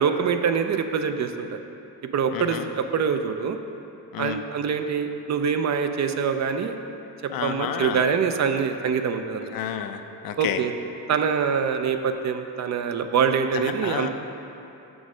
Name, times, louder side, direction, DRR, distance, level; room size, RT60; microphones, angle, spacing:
voice 1, 0.0-1.6 2.1-3.6 4.2-6.7 7.4-9.6 10.4-10.7 11.1-14.1, right 6 dB, 50° right, 7 dB, 0.5 m, -24 dB
voice 2, 2.3-2.7 4.1-4.4 7.3-8.0 9.5-10.6 13.5-14.1, left 9 dB, 65° left, 7 dB, 0.6 m, -30 dB
6.2 x 6.2 x 4.9 m, 2.8 s
cardioid pair, 115°, 38 cm